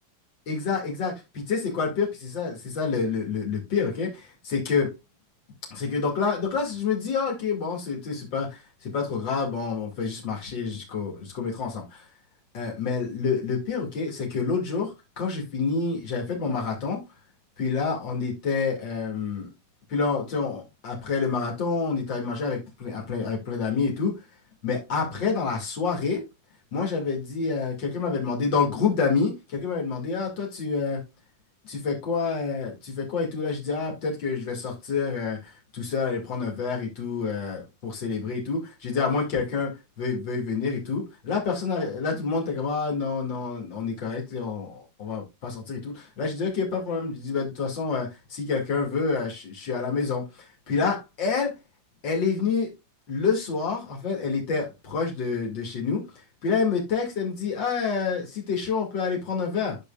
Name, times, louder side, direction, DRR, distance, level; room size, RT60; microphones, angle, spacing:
voice 1, 0.4-4.9 5.7-12.0 12.5-17.0 17.6-19.5 19.9-24.1 24.6-26.2 26.7-31.0 31.6-51.5 52.0-52.7 53.1-56.0 56.4-59.8, left 5 dB, 50° left, 1.3 m, -28 dB
11.5 x 5.5 x 2.4 m
omnidirectional pair, 6.0 m